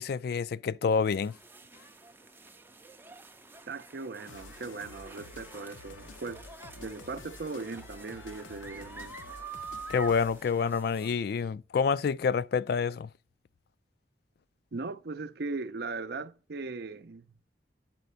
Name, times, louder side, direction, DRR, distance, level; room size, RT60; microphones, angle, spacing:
voice 1, 0.0-1.4 9.9-13.1, left 5 dB, 55° left, 0.3 m, -28 dB
sound 1, 1.0-11.1, right 3 dB, 10° right, 0.5 m, -47 dB
voice 2, 3.7-6.5 6.8-9.2 14.7-17.3, right 3 dB, 55° right, 0.5 m, -38 dB
sound 2, 4.3-10.6, left 3 dB, 90° left, 0.6 m, -50 dB
9.1 x 4.2 x 6.8 m
head